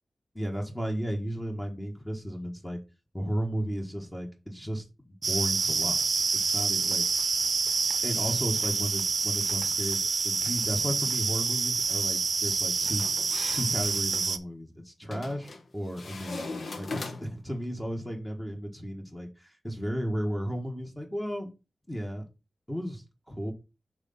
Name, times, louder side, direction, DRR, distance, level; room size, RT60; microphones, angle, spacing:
voice 1, 0.3-2.8 3.1-4.8 5.3-6.2 6.5-7.0 8.0-13.0 13.5-21.5 21.9-22.3 22.7-23.5, equal, 10° left, 1 dB, 1.5 m, -34 dB
sound 1, 5.2-14.4, right 4 dB, 60° right, 0.6 m, -27 dB
sound 2, 12.9-14.1 15.1-15.6 16.0-17.5, left 3 dB, 70° left, 1.1 m, -39 dB
6.5 x 3.8 x 5.5 m, 0.28 s
wide cardioid pair, 80°, 0 cm